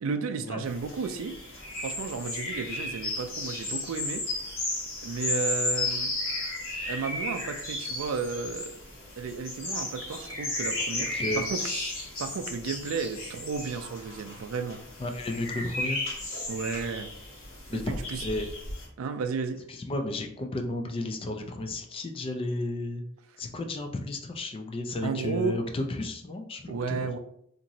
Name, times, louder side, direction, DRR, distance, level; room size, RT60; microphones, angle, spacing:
voice 1, 0.0-1.3 1.8-4.2 5.0-6.1 6.9-8.8 9.2-11.6 12.2-14.8 16.5-17.1 17.7-18.2 19.0-19.6 25.0-25.6 26.7-27.2, right 5 dB, 75° right, 7 dB, 0.4 m, -33 dB
sound 1, 0.6-18.9, left 2 dB, 75° left, 1.0 m, -34 dB
voice 2, 11.0-11.4 15.0-16.0 17.7-18.5 19.7-23.0 23.4-27.1, left 2 dB, 25° left, 5 dB, 0.3 m, -33 dB
2.9 x 2.6 x 2.7 m, 0.70 s
head